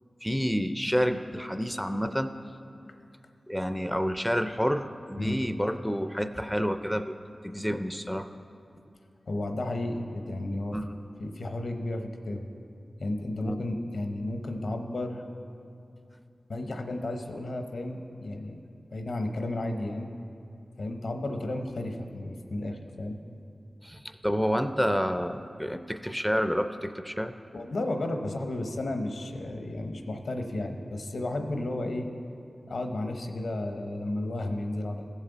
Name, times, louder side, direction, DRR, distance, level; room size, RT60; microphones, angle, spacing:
voice 1, 0.2-2.3 3.5-7.1 7.4-8.3 10.7-10.9 13.4-13.6 23.8-27.3, equal, ahead, 9 dB, 0.4 m, -29 dB
voice 2, 9.3-10.8 11.2-12.5 13.0-15.2 16.5-18.6 18.9-20.1 20.8-23.2 27.5-32.1 32.7-35.1, left 1 dB, 80° left, 5 dB, 0.8 m, -33 dB
16.0 x 7.3 x 4.0 m, 2.6 s
wide cardioid pair, 90°, 0 cm